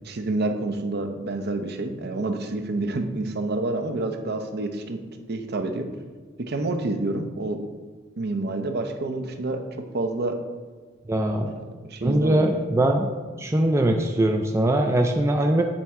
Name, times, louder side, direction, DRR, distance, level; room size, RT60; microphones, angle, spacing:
voice 1, 0.0-5.0 5.3-5.9 6.4-7.7 8.2-9.6 9.9-10.4 11.5-12.6, right 2 dB, 55° right, 6 dB, 0.6 m, -28 dB
voice 2, 11.1-11.5 12.0-13.1 13.4-15.6, right 1 dB, 15° right, 3 dB, 0.3 m, -21 dB
8.8 x 4.4 x 3.6 m, 1.4 s
head